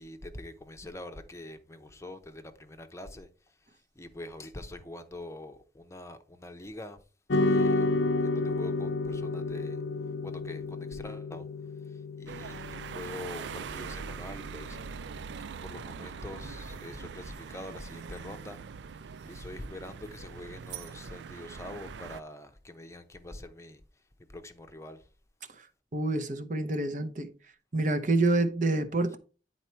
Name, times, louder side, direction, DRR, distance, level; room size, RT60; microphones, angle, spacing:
voice 1, 0.0-3.3 4.0-7.0 7.4-7.9 8.2-9.8 10.2-11.5 11.9-14.8 15.6-18.6 19.2-23.8 24.3-25.0, left 1 dB, 15° left, 0.7 m, -44 dB
sound 1, 7.3-15.8, left 2 dB, 75° left, 0.6 m, -31 dB
sound 2, 12.3-22.2, right 6 dB, 75° right, 0.4 m, -42 dB
voice 2, 25.9-27.3 27.7-29.2, right 2 dB, 45° right, 0.8 m, -27 dB
9.8 x 4.2 x 4.5 m
head